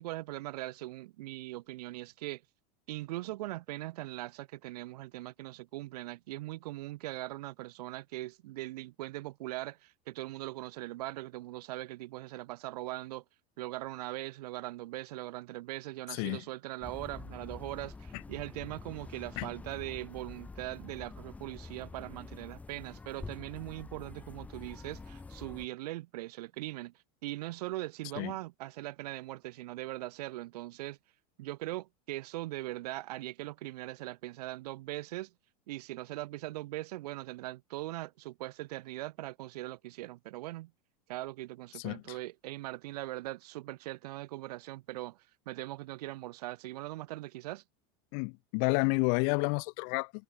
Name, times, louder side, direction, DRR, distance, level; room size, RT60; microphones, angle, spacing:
voice 1, 0.0-2.4 2.9-13.2 13.6-26.9 27.2-31.0 31.4-35.3 35.7-40.7 41.1-45.2 45.5-47.6, right 17 dB, 75° right, 1.5 m, -40 dB
voice 2, 16.1-16.4 19.4-19.5 28.2-28.3 41.8-42.2 48.1-50.1, left 40 dB or more, 40° left, 0.8 m, -30 dB
sound 1, 16.8-25.7, left 3 dB, 5° left, 1.7 m, -47 dB
supercardioid pair, 180°, 20 cm